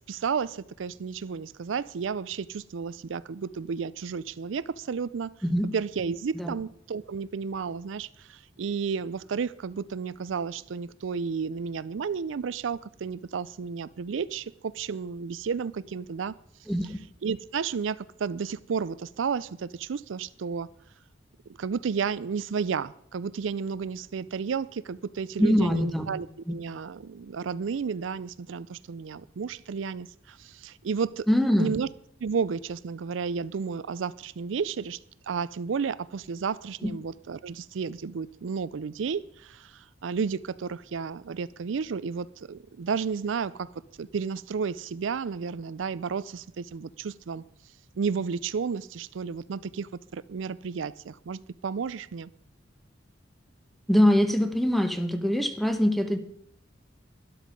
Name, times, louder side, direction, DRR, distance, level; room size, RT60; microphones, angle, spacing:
voice 1, 0.1-5.3 5.7-16.3 16.8-16.9 17.2-20.7 21.6-31.3 31.6-31.9 32.2-35.0 35.3-43.7 44.0-47.4 48.0-52.3, right 6 dB, 80° right, 18 dB, 0.4 m, -32 dB
voice 2, 16.7-17.0 25.4-26.1 31.3-31.7 36.8-36.9 53.9-56.2, equal, ahead, 9 dB, 1.0 m, -23 dB
12.0 x 11.5 x 5.2 m, 0.69 s
head